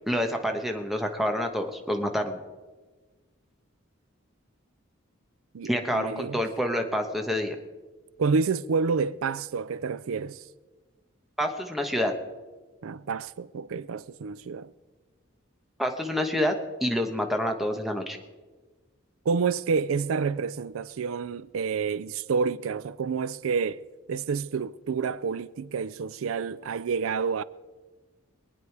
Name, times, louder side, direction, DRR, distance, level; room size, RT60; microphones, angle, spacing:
voice 1, 0.1-2.4 5.6-7.5 11.4-12.1 15.8-16.5 16.8-18.2, equal, ahead, 1.1 m, -27 dB
voice 2, 5.5-6.4 8.2-10.4 12.8-14.7 19.3-23.8 24.1-27.4, right 5 dB, 85° right, 0.4 m, -29 dB
23.5 x 9.3 x 4.7 m
head